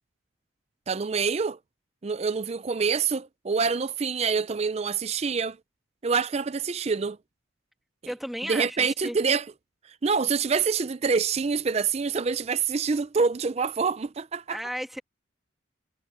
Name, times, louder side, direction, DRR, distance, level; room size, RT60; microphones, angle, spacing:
voice 1, 0.9-1.6 2.0-5.6 6.0-7.2 8.5-9.4 10.0-14.6, right 5 dB, 30° right, 0.4 m, -26 dB
voice 2, 8.1-9.2 14.5-15.0, equal, ahead, 2.0 m, -34 dB
head